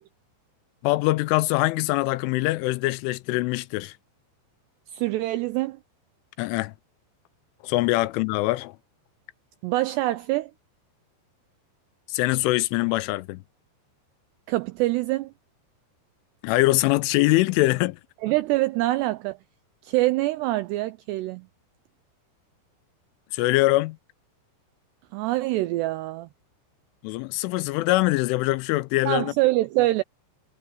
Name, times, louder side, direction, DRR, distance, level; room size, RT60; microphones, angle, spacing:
voice 1, 0.8-3.9 6.4-6.7 7.6-8.8 12.1-13.4 16.4-18.0 23.3-24.0 27.0-29.3, left 19 dB, 85° left, 3.2 m, -23 dB
voice 2, 4.9-5.8 9.6-10.5 14.5-15.3 18.2-19.4 19.8-21.5 25.1-26.3 29.1-30.0, right 18 dB, 90° right, 2.4 m, -25 dB
omnidirectional pair, 5.6 m